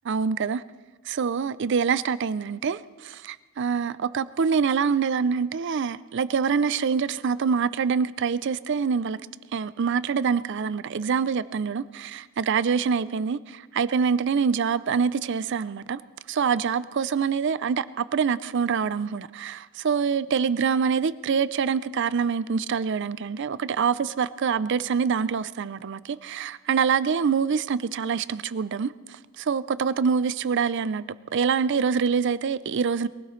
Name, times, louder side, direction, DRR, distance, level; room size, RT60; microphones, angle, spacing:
voice 1, 0.1-0.6 1.1-9.2 9.5-16.0 16.3-31.0 31.3-33.1, right 6 dB, 55° right, 0.4 m, -25 dB
22.5 x 16.5 x 3.2 m
head